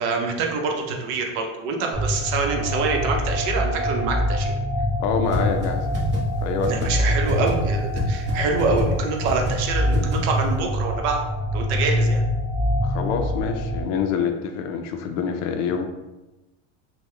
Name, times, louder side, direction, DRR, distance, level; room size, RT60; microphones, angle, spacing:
voice 1, 0.0-4.5 6.7-11.2 11.5-12.2, right 4 dB, 70° right, 1 dB, 0.8 m, -25 dB
sound 1, 1.9-13.8, equal, ahead, 0.7 m, -25 dB
voice 2, 5.0-5.9 6.4-6.9 7.2-7.3 12.8-15.9, left 6 dB, 55° left, 6 dB, 0.5 m, -26 dB
sound 2, 5.3-5.4 5.6-5.7 5.9-6.2 6.6-6.9 7.3-7.5 7.9-8.0 8.3-8.4 8.6-8.8 9.3-9.5 9.9-10.2, equal, 30° right, 0.9 m, -26 dB
3.5 x 2.2 x 3.2 m, 1.1 s
supercardioid pair, 145°, 34 cm